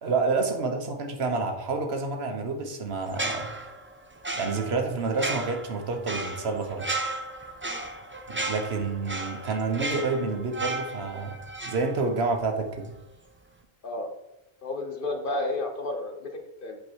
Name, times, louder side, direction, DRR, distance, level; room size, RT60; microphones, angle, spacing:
voice 1, 0.0-3.5 4.3-7.0 8.3-11.4 11.6-12.9, right 4 dB, 90° right, 5 dB, 1.3 m, -29 dB
sound 1, 3.1-12.5 12.7-13.0, right 2 dB, 15° right, 0.5 m, -34 dB
voice 2, 14.6-16.3 16.6-16.8, left 2 dB, 60° left, 4 dB, 1.3 m, -31 dB
8.1 x 4.8 x 4.6 m, 0.89 s
omnidirectional pair, 1.0 m